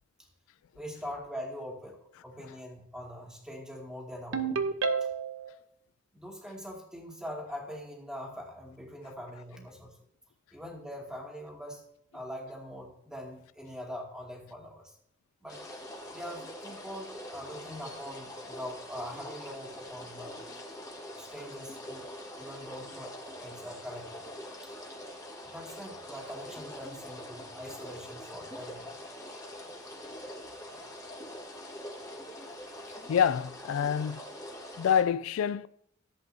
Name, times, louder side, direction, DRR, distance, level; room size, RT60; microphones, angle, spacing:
voice 1, 0.7-2.0 2.2-4.7 5.0-5.1 6.1-9.9 10.5-11.8 12.1-15.0 15.4-15.6 16.1-20.4 21.2-22.1 22.4-24.3 24.6-24.7 25.4-28.9, equal, 5° right, 2.4 m, -43 dB
Ringtone, 4.3-5.5, right 5 dB, 85° right, 0.9 m, -29 dB
sound 1, 15.5-35.0, left 1 dB, 20° left, 1.7 m, -44 dB
voice 2, 33.1-34.2 34.8-35.7, left 8 dB, 85° left, 0.3 m, -26 dB
14.5 x 8.0 x 2.8 m
head